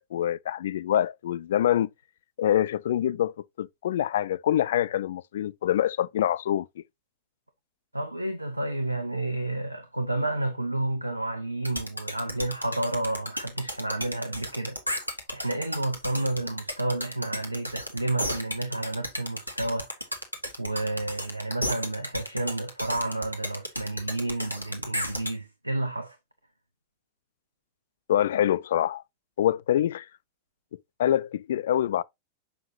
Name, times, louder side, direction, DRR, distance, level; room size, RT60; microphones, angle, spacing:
voice 1, 0.0-1.9 2.4-6.7 28.1-29.0 29.4-30.1 31.0-32.0, left 11 dB, 60° left, 0.3 m, -25 dB
voice 2, 7.9-14.8 15.3-20.1 20.6-26.2, right 2 dB, 85° right, 0.6 m, -30 dB
sound 1, 11.6-25.3, equal, 90° left, 1.2 m, -33 dB
6.6 x 5.5 x 2.7 m
figure-of-eight pair, 90°, 0 cm